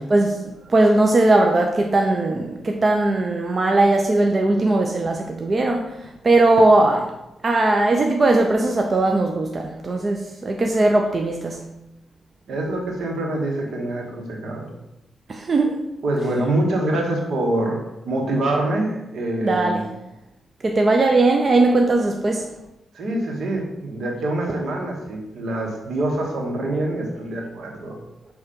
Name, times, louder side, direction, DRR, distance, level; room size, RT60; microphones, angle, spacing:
voice 1, 0.0-7.1 7.4-11.6 15.3-15.8 19.4-19.9 20.6-22.5, right 2 dB, 35° right, 2 dB, 0.6 m, -19 dB
voice 2, 12.5-14.7 16.0-19.8 22.9-28.0, right 1 dB, 75° right, 0 dB, 1.6 m, -25 dB
5.7 x 3.5 x 5.2 m, 0.91 s
cardioid pair, 95°, 0 cm